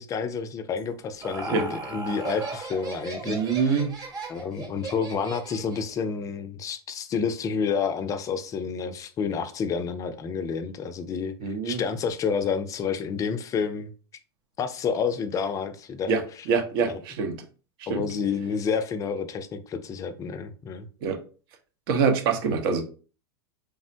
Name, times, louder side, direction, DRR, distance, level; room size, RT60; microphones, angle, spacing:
voice 1, 0.0-3.8 4.3-13.9 14.6-16.5 16.8-17.0 17.9-20.9, left 6 dB, 25° left, 10 dB, 0.4 m, -29 dB
Laughter, 0.8-5.9, right 3 dB, 25° right, 1.0 m, -36 dB
voice 2, 3.2-3.9 11.4-11.8 16.1-16.2 16.5-17.3 17.9-18.0 21.0-21.2 21.9-22.8, right 5 dB, 60° right, 4 dB, 0.8 m, -24 dB
3.4 x 2.1 x 2.6 m, 0.38 s
hypercardioid pair, 115°, 13 cm